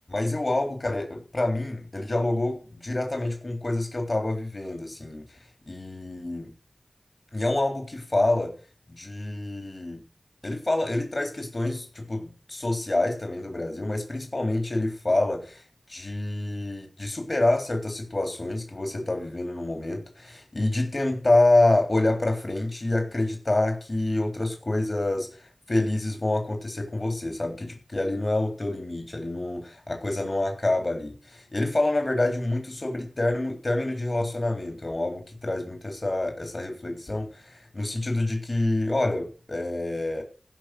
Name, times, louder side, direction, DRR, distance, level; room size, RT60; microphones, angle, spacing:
voice 1, 0.1-5.4 5.7-6.5 7.3-8.5 8.9-10.0 10.4-15.6 15.9-40.2, left 2 dB, 50° left, 3.7 m, -27 dB
15.5 x 5.9 x 7.9 m
wide cardioid pair, 40°, 0 cm